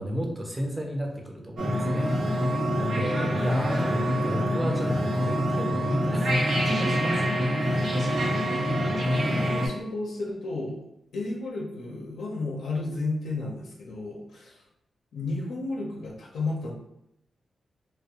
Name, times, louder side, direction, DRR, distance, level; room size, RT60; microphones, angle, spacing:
voice 1, 0.0-6.3 6.7-7.4, equal, 10° right, 0 dB, 0.5 m, -32 dB
sound 1, 1.6-9.7, equal, 70° right, 0.6 m, -25 dB
voice 2, 8.7-10.8 11.1-14.6 15.1-16.7, left 2 dB, 90° left, -2 dB, 0.5 m, -33 dB
2.3 x 2.0 x 2.7 m, 0.82 s
cardioid pair, 90°, 0 cm